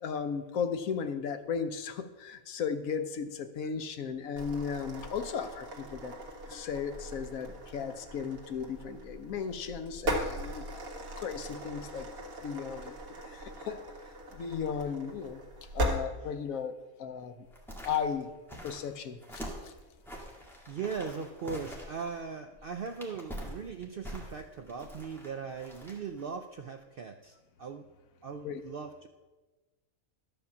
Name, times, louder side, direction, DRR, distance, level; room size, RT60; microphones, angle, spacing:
voice 1, 0.0-6.1 6.5-10.7 11.2-12.1 12.4-12.9 13.3-13.8 14.4-15.4 15.7-17.3 17.8-18.3 18.6-19.7 28.4-28.6, left 6 dB, 75° left, 9 dB, 1.2 m, -35 dB
sound 1, 4.4-16.0, equal, 90° right, 1.9 m, -39 dB
sound 2, 17.5-26.3 26.6-26.7, equal, ahead, 1.9 m, -45 dB
voice 2, 20.3-27.9 28.2-29.1, right 5 dB, 65° right, 6 dB, 0.5 m, -39 dB
12.0 x 5.3 x 7.0 m, 1.2 s
omnidirectional pair, 1.5 m